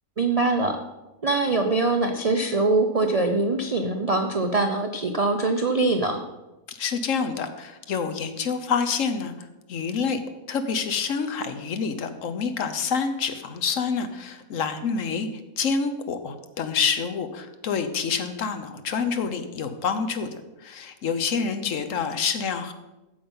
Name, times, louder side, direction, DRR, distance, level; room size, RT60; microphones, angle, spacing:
voice 1, 0.2-0.8 1.2-6.2, right 3 dB, 50° right, 5 dB, 0.4 m, -23 dB
voice 2, 6.7-10.2 10.5-15.3 15.6-22.7, left 5 dB, 65° left, 9 dB, 1.1 m, -27 dB
8.6 x 7.2 x 5.4 m, 1.0 s
omnidirectional pair, 1.5 m